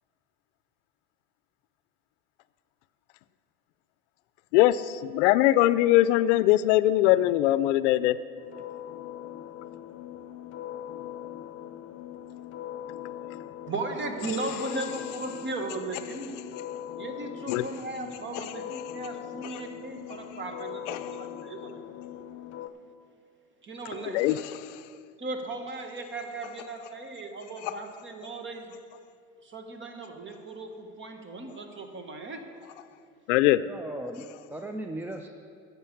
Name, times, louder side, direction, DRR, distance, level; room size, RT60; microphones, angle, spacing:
voice 1, 4.5-8.2 17.5-17.6 20.9-21.0 24.1-24.3 33.3-33.6, left 15 dB, 85° left, 15 dB, 0.5 m, -21 dB
sound 1, 8.4-22.7, left 11 dB, 40° left, 0.8 m, -41 dB
voice 2, 13.7-16.3 17.0-21.8 23.6-24.4 25.2-28.7 29.4-32.4, right 2 dB, 35° right, 5 dB, 1.5 m, -37 dB
voice 3, 33.5-35.3, right 1 dB, 5° right, 4 dB, 0.5 m, -37 dB
10.0 x 6.8 x 8.4 m, 2.3 s
supercardioid pair, 105°, 35 cm